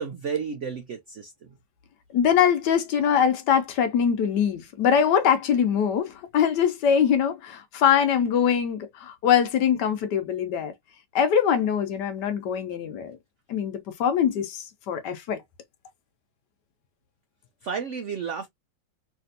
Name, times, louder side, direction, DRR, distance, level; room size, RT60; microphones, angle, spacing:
voice 1, 0.0-1.5 17.6-18.5, right 6 dB, 85° right, 0.6 m, -32 dB
voice 2, 2.1-10.7 11.1-13.2 13.5-15.4, left 8 dB, 70° left, 1.2 m, -23 dB
3.3 x 2.8 x 2.6 m
omnidirectional pair, 2.0 m